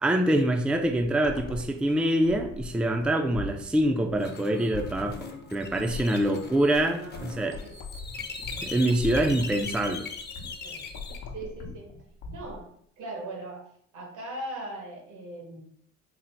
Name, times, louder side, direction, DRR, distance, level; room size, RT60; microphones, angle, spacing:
voice 1, 0.0-7.6 8.6-10.1, right 1 dB, 5° right, 5 dB, 0.3 m, -25 dB
sound 1, 0.7-12.6, left 3 dB, 80° left, 0.8 m, -40 dB
sound 2, 4.2-11.2, left 4 dB, 35° left, 0.6 m, -40 dB
voice 2, 5.7-7.7 10.6-10.8 11.3-11.9 12.3-12.6 13.0-13.6 13.9-15.6, right 1 dB, 80° right, 1 dB, 1.2 m, -40 dB
3.9 x 2.0 x 4.4 m, 0.66 s
cardioid pair, 90°, 30 cm